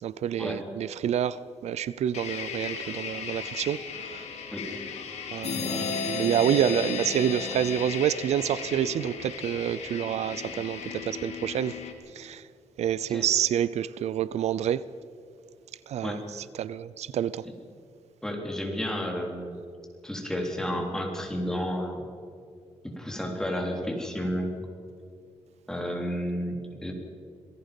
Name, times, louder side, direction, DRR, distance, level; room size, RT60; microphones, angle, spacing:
voice 1, 0.0-4.3 5.3-11.8 12.1-12.5 12.8-14.8 15.9-17.5, right 10 dB, 75° right, 0.5 m, -28 dB
sound 1, 2.1-11.9, left 6 dB, 85° left, 2.8 m, -38 dB
sound 2, 5.4-9.0, left 5 dB, 65° left, 3.1 m, -33 dB
voice 2, 5.5-5.9 13.1-13.3 16.0-16.2 18.2-19.6 20.0-22.0 22.8-24.6 25.7-26.9, equal, 5° left, 3.6 m, -32 dB
26.5 x 18.5 x 5.3 m
wide cardioid pair, 135°, 11 cm